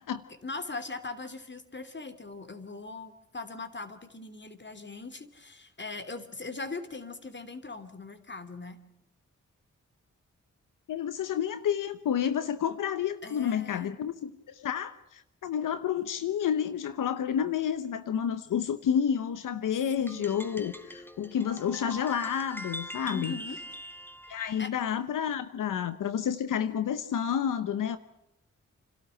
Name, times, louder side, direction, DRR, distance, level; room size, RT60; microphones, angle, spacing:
voice 1, 0.4-8.8 13.2-13.9 20.0-20.3 23.1-23.6 24.6-24.7, left 3 dB, 35° left, 11 dB, 3.1 m, -40 dB
voice 2, 10.9-23.4 24.3-28.0, left 8 dB, 85° left, 12 dB, 0.9 m, -30 dB
sound 1, 19.9-24.7, equal, 5° left, 1.7 m, -42 dB
29.0 x 13.0 x 10.0 m, 0.84 s
cardioid pair, 45°, 31 cm